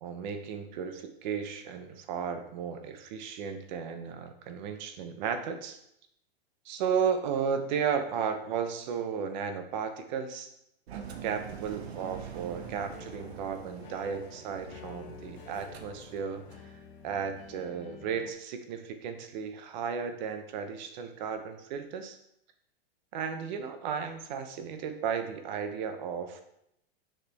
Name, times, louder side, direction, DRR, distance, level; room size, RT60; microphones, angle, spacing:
voice 1, 0.0-5.8 6.7-10.5 11.2-16.4 17.0-22.2 23.1-26.4, right 7 dB, 45° right, 8 dB, 0.9 m, -34 dB
Engine, 10.9-16.7, right 8 dB, 85° right, 1.0 m, -45 dB
sound 1, 11.0-18.3, left 7 dB, 65° left, 1.0 m, -51 dB
7.0 x 4.8 x 3.5 m, 0.77 s
supercardioid pair, 155°, 31 cm